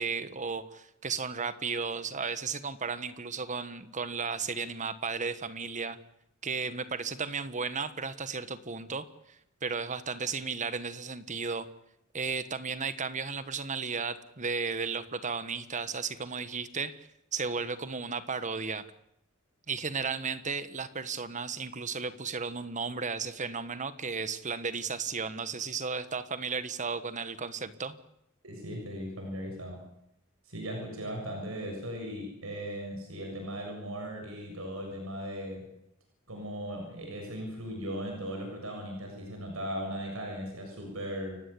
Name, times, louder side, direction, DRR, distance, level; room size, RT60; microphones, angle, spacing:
voice 1, 0.0-6.0 6.4-11.7 12.1-18.9 19.7-27.9, right 5 dB, 35° right, 13 dB, 1.3 m, -34 dB
voice 2, 28.4-29.8 30.4-35.6 36.3-41.4, equal, 80° right, 2 dB, 7.0 m, -38 dB
29.5 x 16.5 x 8.4 m, 0.81 s
head